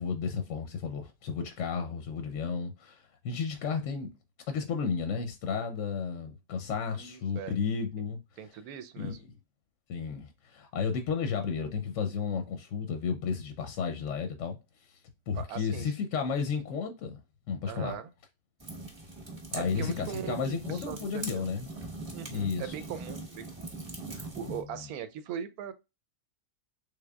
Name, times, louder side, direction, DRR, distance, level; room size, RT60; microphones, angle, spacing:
voice 1, 0.0-4.1 4.5-8.2 9.0-9.4 9.9-15.0 15.3-17.2 17.5-18.0 19.5-21.7 22.3-22.7 24.4-24.8, left 6 dB, 65° left, 0.8 m, -33 dB
voice 2, 7.0-7.6 8.4-9.2 15.4-15.9 17.7-18.1 19.5-21.5 22.1-23.8 24.1-25.7, right 8 dB, 80° right, 1.1 m, -40 dB
sound 1, 18.6-24.6, right 2 dB, 20° right, 0.8 m, -41 dB
3.6 x 3.3 x 2.2 m
omnidirectional pair, 1.6 m